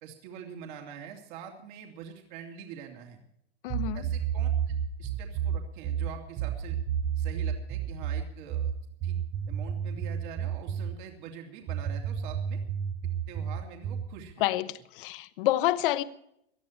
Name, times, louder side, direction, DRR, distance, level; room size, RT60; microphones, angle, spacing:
voice 1, 0.0-3.2 3.9-6.8 7.2-8.7 9.0-9.2 9.5-12.6 13.3-14.4, right 8 dB, 45° right, 2.6 m, -45 dB
voice 2, 3.6-4.1 14.4-16.0, left 15 dB, 55° left, 0.9 m, -28 dB
sound 1, 3.7-11.0 11.7-14.2, right 8 dB, 15° right, 0.4 m, -31 dB
19.0 x 13.5 x 4.4 m
supercardioid pair, 165°, 33 cm